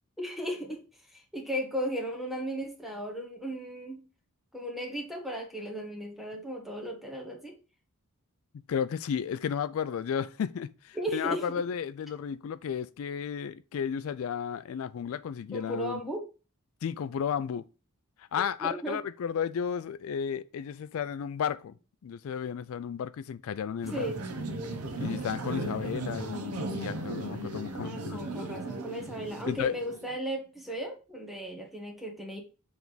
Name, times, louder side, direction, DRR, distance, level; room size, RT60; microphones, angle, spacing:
voice 1, 0.2-0.8 1.1-4.0 4.5-7.5 10.9-11.4 15.5-16.2 18.6-19.0 23.9-24.2 27.7-32.4, equal, ahead, 1.3 m, -36 dB
voice 2, 8.7-16.0 16.8-17.7 18.2-21.7 22.0-24.1 25.0-28.2 29.5-29.8, left 7 dB, 70° left, 0.3 m, -33 dB
sound 1, 23.8-30.2, right 2 dB, 85° right, 0.9 m, -36 dB
7.1 x 3.4 x 3.9 m
head